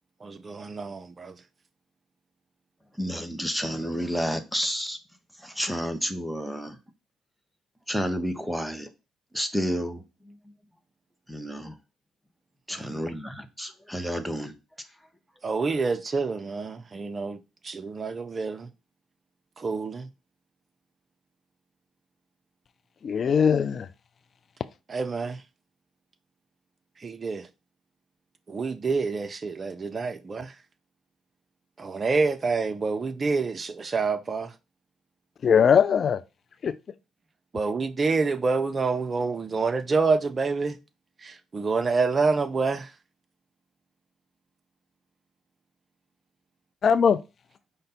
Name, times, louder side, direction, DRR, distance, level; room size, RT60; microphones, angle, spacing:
voice 1, 0.2-1.3 15.4-17.4 17.6-18.7 19.6-20.1 24.9-25.4 27.0-27.5 28.5-30.5 31.8-34.5 37.5-40.8 41.2-42.9, right 4 dB, 35° right, 0.6 m, -27 dB
voice 2, 3.0-5.0 5.4-6.8 7.9-8.9 9.3-10.5 11.3-11.8 12.7-14.6, equal, ahead, 0.8 m, -30 dB
voice 3, 23.0-23.9 35.4-36.2 36.6-36.8 46.8-47.2, left 7 dB, 50° left, 0.3 m, -20 dB
5.1 x 2.2 x 4.1 m
supercardioid pair, 65°, 0 cm